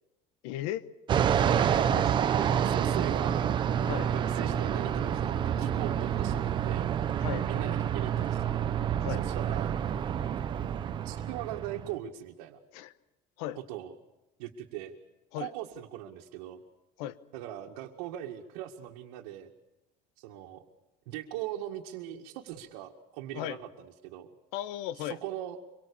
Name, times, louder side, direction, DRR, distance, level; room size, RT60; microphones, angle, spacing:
voice 1, 0.4-0.9 1.5-2.3 3.8-4.1 7.2-7.5 9.0-9.2 12.7-12.9 13.4-13.6 15.3-15.5 17.0-17.2 23.3-23.6 24.5-25.2, left 13 dB, 75° left, 15 dB, 1.2 m, -36 dB
Fixed-wing aircraft airplane, 1.1-11.9, right 9 dB, 25° right, 0.8 m, -28 dB
voice 2, 1.6-1.9 2.5-3.6 3.9-7.0 7.5-8.5 9.2-9.8 11.0-12.6 13.6-13.9 14.4-15.0 15.4-16.6 17.3-19.5 20.2-20.7 21.1-24.3 24.9-25.6, right 12 dB, 80° right, 0 dB, 2.1 m, -40 dB
25.0 x 23.5 x 7.1 m, 0.96 s
cardioid pair, 180°, 20 cm